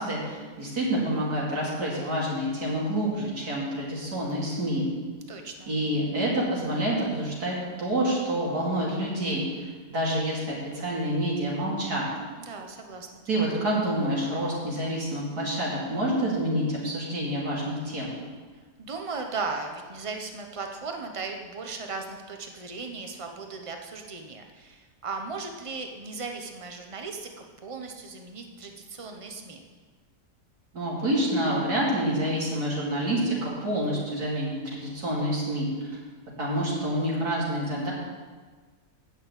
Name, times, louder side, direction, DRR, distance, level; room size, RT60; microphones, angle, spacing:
voice 1, 0.0-4.9 5.7-12.1 13.3-18.1 30.7-35.7 36.4-37.9, right 1 dB, 70° right, -5 dB, 3.1 m, -28 dB
voice 2, 5.3-5.7 12.4-13.2 18.8-27.3 27.6-29.6, right 4 dB, 25° right, 4 dB, 0.8 m, -37 dB
8.5 x 6.4 x 8.1 m, 1.4 s
omnidirectional pair, 1.7 m